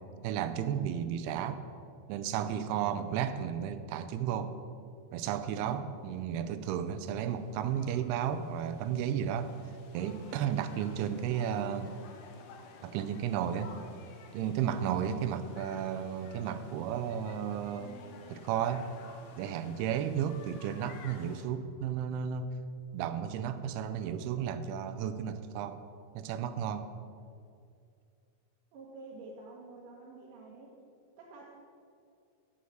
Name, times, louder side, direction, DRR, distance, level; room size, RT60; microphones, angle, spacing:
voice 1, 0.2-1.6 2.1-4.6 5.1-9.5 9.9-11.9 12.8-13.7 14.3-17.9 18.3-18.9 19.4-22.5 22.9-25.8 26.2-26.9, right 9 dB, 85° right, 11 dB, 2.6 m, -33 dB
sound 1, 6.3-21.5, left 5 dB, 70° left, 2.1 m, -54 dB
voice 2, 28.7-30.7 31.2-31.7, right 3 dB, 70° right, -3 dB, 2.4 m, -49 dB
9.5 x 5.6 x 7.8 m, 2.4 s
omnidirectional pair, 4.6 m